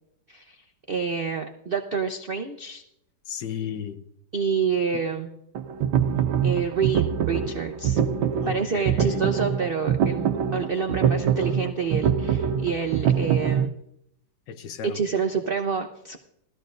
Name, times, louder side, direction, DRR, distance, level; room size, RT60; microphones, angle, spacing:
voice 1, 0.9-2.8 4.3-5.3 6.4-8.0 8.5-13.7 14.8-16.2, right 6 dB, 65° right, 0.5 m, -28 dB
voice 2, 3.3-4.0 8.4-9.3 14.5-15.0, left 8 dB, 70° left, 1.5 m, -34 dB
sound 1, 5.5-13.7, right 8 dB, 80° right, 1.4 m, -24 dB
18.0 x 13.5 x 2.5 m
omnidirectional pair, 2.1 m